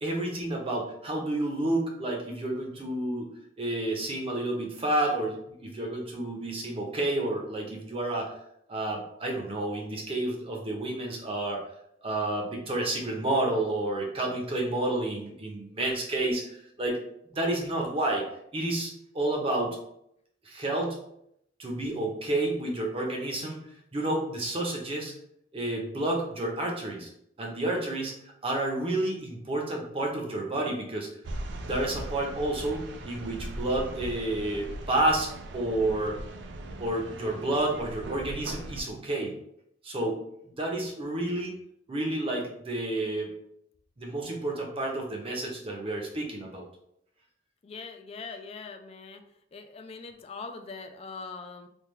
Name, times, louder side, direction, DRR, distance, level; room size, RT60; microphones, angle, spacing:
voice 1, 0.0-3.3 3.6-5.4 5.6-8.3 8.7-11.6 12.0-17.0 17.3-18.2 18.5-19.8 20.5-21.0 21.6-23.6 23.9-25.1 25.5-27.1 27.4-28.2 28.4-31.1 31.6-36.2 36.8-39.3 39.8-40.2 40.6-41.5 41.9-43.3 44.0-46.6, right 1 dB, 30° right, 0 dB, 0.7 m, -30 dB
sound 1, 31.2-38.8, right 1 dB, 75° right, 0.4 m, -39 dB
voice 2, 47.6-49.2 49.5-51.7, left 4 dB, 35° left, 7 dB, 0.3 m, -42 dB
3.4 x 2.3 x 3.1 m, 0.74 s
head